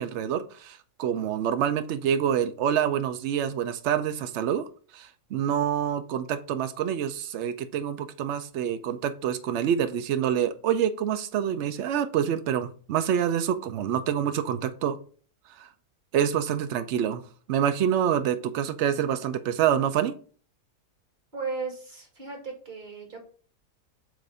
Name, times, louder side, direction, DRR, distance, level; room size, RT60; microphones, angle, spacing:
voice 1, 0.0-4.7 4.9-15.0 15.6-15.7 16.1-17.2 17.5-20.1, right 9 dB, 65° right, 10 dB, 0.7 m, -27 dB
voice 2, 21.3-23.2, right 4 dB, 30° right, 0 dB, 2.1 m, -36 dB
7.6 x 2.5 x 5.4 m, 0.42 s
omnidirectional pair, 1.7 m